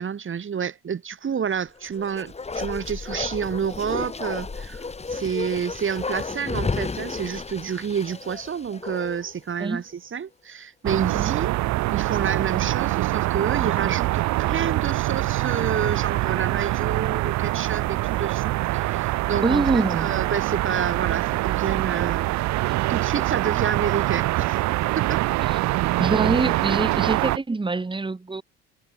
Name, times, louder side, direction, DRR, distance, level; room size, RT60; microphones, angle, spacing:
voice 1, 0.0-11.6 11.9-22.3 22.9-24.6 25.0-25.2, right 7 dB, 35° right, 1.6 m, -29 dB
Bark, 1.8-9.4 9.7-9.8, left 4 dB, 20° left, 1.2 m, -32 dB
sound 1, 10.8-27.4, right 18 dB, 55° right, 0.5 m, -24 dB
voice 2, 19.4-20.1 25.5-25.6 26.0-28.4, right 3 dB, 15° right, 1.2 m, -25 dB
hypercardioid pair, 65°, 34 cm